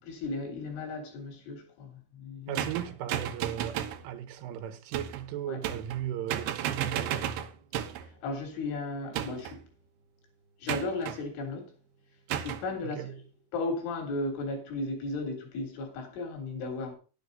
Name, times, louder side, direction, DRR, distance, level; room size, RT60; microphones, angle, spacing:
voice 1, 0.0-2.7 5.5-5.6 8.0-9.7 10.6-11.7 12.3-13.1 13.5-16.9, left 2 dB, 80° left, 5.8 m, -35 dB
voice 2, 2.5-7.4 12.8-13.1, right 11 dB, 90° right, 3.9 m, -37 dB
sound 1, 2.6-4.0 4.9-5.3 5.6-6.0 6.3-8.1 9.1-9.6 10.7-11.2 12.3-12.7, right 10 dB, 75° right, 2.6 m, -33 dB
11.5 x 10.5 x 4.0 m
omnidirectional pair, 5.5 m